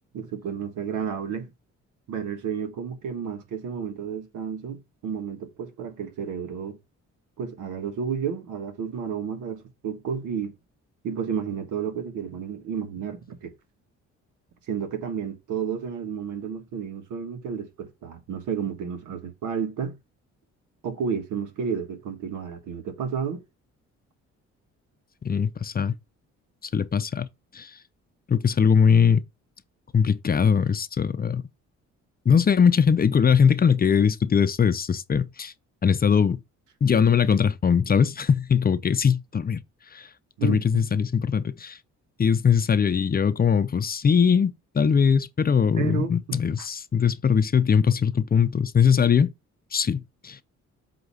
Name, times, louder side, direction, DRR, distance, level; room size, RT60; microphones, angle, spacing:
voice 1, 0.1-1.5 2.1-6.8 7.4-10.5 11.0-13.5 14.7-20.0 20.8-23.4 40.4-40.9 45.8-46.7, right 7 dB, 80° right, 1.5 m, -31 dB
voice 2, 25.2-25.9 26.7-27.3 27.5-27.7 28.3-29.2 29.9-31.4 32.3-35.5 35.8-36.4 36.8-39.6 39.9-40.1 40.4-41.8 42.2-49.3 49.7-50.4, left 6 dB, 30° left, 0.6 m, -21 dB
7.9 x 2.9 x 5.5 m
cardioid pair, 90°, 30 cm